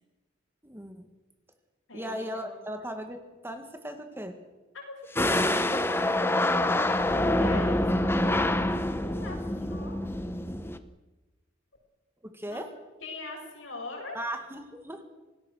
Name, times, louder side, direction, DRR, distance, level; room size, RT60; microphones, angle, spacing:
voice 1, 0.6-1.1 1.9-3.2 3.4-4.4 12.2-12.7 14.1-15.0, equal, 10° right, 6 dB, 2.0 m, -37 dB
voice 2, 1.9-2.6 4.7-6.5 7.0-8.5 9.0-10.0 12.5-12.6 13.0-14.2, left 2 dB, 75° left, 0 dB, 7.8 m, -41 dB
sound 1, 5.2-10.8, left 1 dB, 10° left, 1.0 m, -26 dB
27.0 x 18.5 x 6.5 m, 1.2 s
head